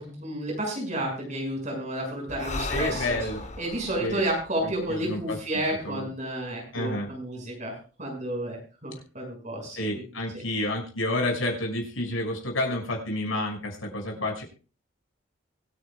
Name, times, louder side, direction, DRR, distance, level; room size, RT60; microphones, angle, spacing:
voice 1, 0.0-3.0 3.6-9.8, right 1 dB, 35° right, 0 dB, 6.3 m, -31 dB
Breathing, 2.3-5.8, left 2 dB, 35° left, 1.0 m, -37 dB
voice 2, 2.7-3.4 4.0-4.2 4.6-5.4 5.8-6.1 6.7-7.1 9.7-14.4, left 1 dB, 80° left, 1 dB, 6.0 m, -30 dB
24.5 x 9.9 x 2.4 m, 0.36 s
head